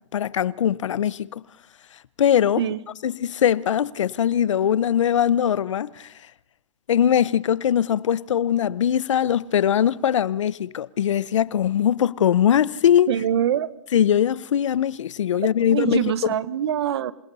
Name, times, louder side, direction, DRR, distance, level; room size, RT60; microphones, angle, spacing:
voice 1, 0.1-1.4 2.2-2.6 3.0-6.1 6.9-13.1 13.9-16.1, left 9 dB, 80° left, 0.9 m, -21 dB
voice 2, 13.1-13.7 15.6-17.1, right 9 dB, 60° right, 1.2 m, -24 dB
28.0 x 19.0 x 5.5 m
hypercardioid pair, 165°, 16 cm